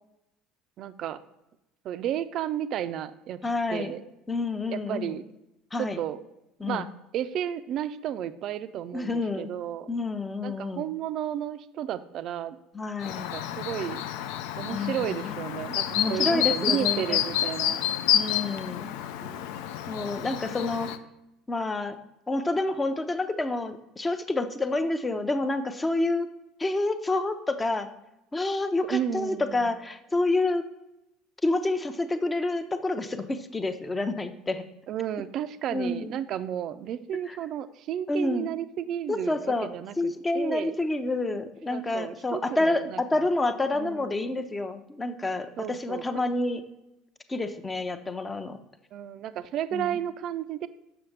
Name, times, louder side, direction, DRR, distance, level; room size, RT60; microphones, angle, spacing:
voice 1, 0.8-1.2 1.8-3.4 3.7-4.0 4.7-5.2 5.8-6.2 6.6-6.9 7.1-9.9 10.4-12.6 13.2-14.0 14.6-17.8 19.2-19.4 28.9-29.7 34.9-40.8 41.7-43.3 43.7-44.3 45.6-46.0 48.9-50.7, right 10 dB, 50° right, 13 dB, 0.4 m, -33 dB
voice 2, 3.4-3.9 4.3-5.2 5.7-6.0 6.6-6.9 8.9-9.5 9.9-10.9 12.7-13.3 14.7-15.4 15.9-17.2 18.1-18.9 19.9-20.9 21.5-22.0 22.3-26.3 26.6-27.9 28.3-30.6 31.4-34.6 35.7-36.2 37.3-37.4 38.1-38.5 39.1-39.7 40.0-46.6 47.3-48.6 49.7-50.0, left 2 dB, 20° left, 9 dB, 0.6 m, -28 dB
Chirp tweet, 13.0-21.0, left 11 dB, 65° left, 0.3 m, -29 dB
6.9 x 5.6 x 3.3 m, 0.90 s
figure-of-eight pair, 65°, 0 cm